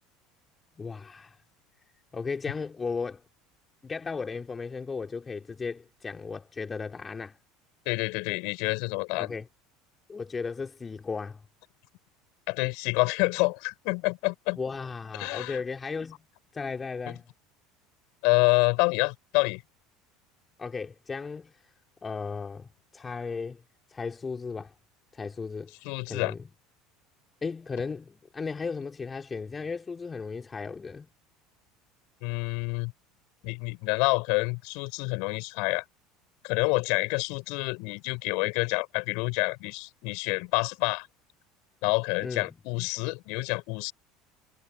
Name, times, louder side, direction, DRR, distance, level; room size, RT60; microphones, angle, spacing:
voice 1, 0.8-1.4 2.1-3.2 3.8-7.4 9.2-9.5 10.1-11.4 14.6-16.2 16.5-17.2 20.6-21.5 22.0-23.6 23.9-24.7 25.1-25.7 26.1-26.5 27.4-31.1 42.2-42.5, left 5 dB, 20° left, 3.1 m, -35 dB
voice 2, 7.9-9.3 12.5-14.6 15.2-15.6 18.2-19.6 25.8-26.3 32.2-32.9 33.4-35.8 36.4-41.1 41.8-43.9, left 31 dB, 55° left, 6.2 m, -27 dB
figure-of-eight pair, 70°, 0 cm